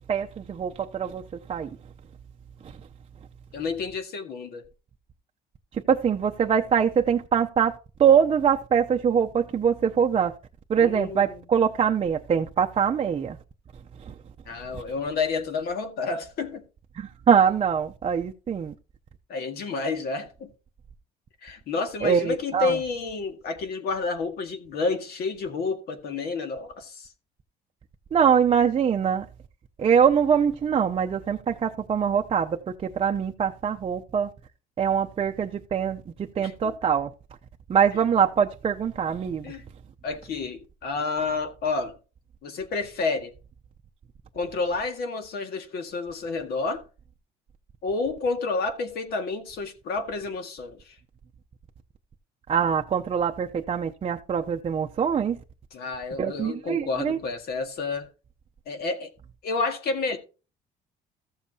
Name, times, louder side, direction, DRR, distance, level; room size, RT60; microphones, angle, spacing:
voice 1, 0.1-1.2 1.5-1.7 5.7-7.7 8.0-10.3 10.7-13.4 14.1-14.2 14.7-14.8 16.9-18.7 22.0-22.8 28.1-29.3 29.8-34.3 34.8-37.1 37.7-39.5 52.5-55.4 56.2-57.2, right 7 dB, 35° right, 0.6 m, -23 dB
voice 2, 3.5-4.6 10.8-11.4 14.5-16.6 19.3-20.5 21.4-27.1 36.4-36.7 39.4-39.7 40.0-42.0 42.4-43.3 44.3-46.8 47.8-51.0 55.7-58.1 58.7-59.1 59.4-60.2, left 4 dB, 70° left, 1.9 m, -30 dB
14.0 x 7.3 x 2.8 m
cardioid pair, 110°, 17 cm